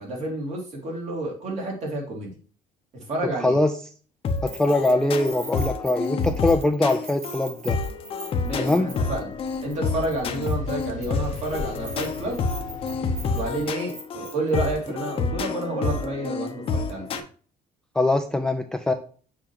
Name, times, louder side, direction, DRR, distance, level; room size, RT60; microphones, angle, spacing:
voice 1, 0.0-2.3 3.1-3.6 8.5-9.3 9.6-12.4 13.3-17.1, right 2 dB, 45° right, 0 dB, 2.7 m, -30 dB
voice 2, 3.4-3.7 4.4-7.8 8.6-8.9 18.0-18.9, left 2 dB, 5° left, 7 dB, 0.3 m, -22 dB
sound 1, 4.2-17.2, left 4 dB, 35° left, 0.7 m, -29 dB
Keys jangling, 4.3-9.2 9.5-9.8 10.0-14.6, right 3 dB, 90° right, 3.2 m, -43 dB
sound 2, 8.4-13.7, left 3 dB, 55° left, 1.0 m, -39 dB
6.9 x 6.0 x 2.9 m, 0.41 s
cardioid pair, 170°, 16 cm